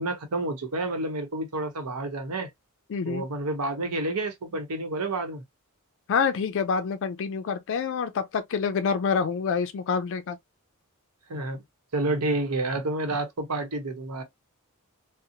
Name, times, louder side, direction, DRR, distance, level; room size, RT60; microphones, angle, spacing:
voice 1, 0.0-2.5 3.0-5.4 11.3-11.6 11.9-14.2, right 2 dB, 85° right, 0.9 m, -29 dB
voice 2, 2.9-3.2 6.1-10.4, left 6 dB, 60° left, 0.3 m, -27 dB
2.8 x 2.0 x 2.5 m
head